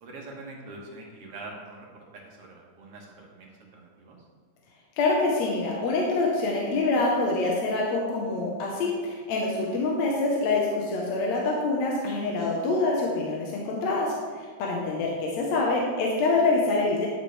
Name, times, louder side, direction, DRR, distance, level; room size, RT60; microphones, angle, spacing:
voice 1, 0.0-4.2, right 2 dB, 60° right, -1 dB, 1.8 m, -44 dB
voice 2, 5.0-17.1, left 3 dB, 70° left, -2 dB, 2.2 m, -26 dB
11.0 x 7.2 x 3.3 m, 1.5 s
omnidirectional pair, 3.5 m